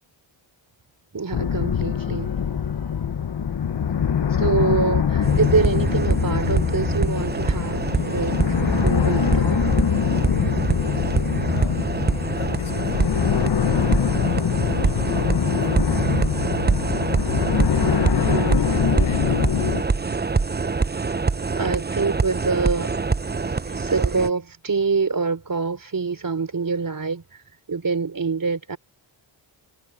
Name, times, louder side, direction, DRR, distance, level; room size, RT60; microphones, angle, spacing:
voice 1, 1.1-2.4 4.4-9.6 18.1-18.6 21.6-22.9 23.6-27.2 27.7-28.8, right 4 dB, 40° right, 4.3 m, -25 dB
sound 1, 1.3-19.8, left 7 dB, 55° left, 1.4 m, -23 dB
sound 2, 5.2-24.3, right 4 dB, 20° right, 0.8 m, -25 dB
voice 2, 11.4-15.9 17.5-20.3, left 8 dB, 85° left, 7.4 m, -42 dB
cardioid pair, 80°, 48 cm